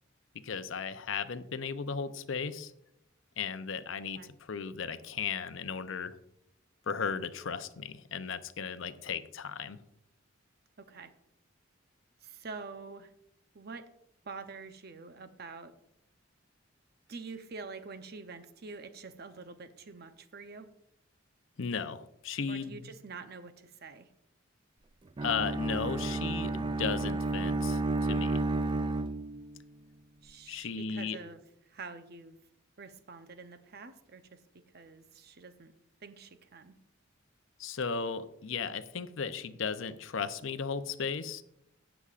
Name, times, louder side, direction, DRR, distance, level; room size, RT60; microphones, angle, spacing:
voice 1, 0.4-2.7 3.4-6.2 6.9-9.8 21.6-22.9 25.2-28.4 30.5-31.2 37.6-41.4, left 6 dB, 70° left, 11 dB, 0.6 m, -36 dB
voice 2, 10.8-11.1 12.2-13.1 13.5-13.9 14.2-15.7 17.1-20.7 22.5-24.1 30.2-32.4 32.8-35.7 36.0-36.8, right 4 dB, 50° right, 9 dB, 0.7 m, -46 dB
Bowed string instrument, 25.2-29.6, right 2 dB, 25° right, 0.3 m, -31 dB
18.0 x 7.0 x 2.5 m, 0.79 s
head